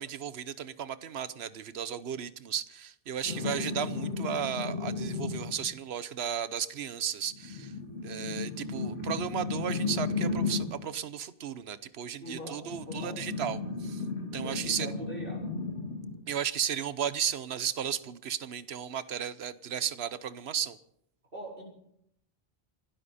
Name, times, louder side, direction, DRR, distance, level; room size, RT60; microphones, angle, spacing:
voice 1, 0.0-7.7 8.0-14.0 14.3-14.9 16.3-20.8, right 8 dB, 90° right, 15 dB, 1.1 m, -34 dB
sound 1, 3.2-5.7 7.3-10.8 12.6-16.2 17.8-17.9, left 4 dB, 85° left, 2.3 m, -34 dB
voice 2, 3.2-3.6 12.2-13.2 14.3-15.4 21.3-21.6, equal, 60° right, -2 dB, 4.7 m, -42 dB
28.0 x 12.5 x 4.2 m, 0.75 s
omnidirectional pair, 1.0 m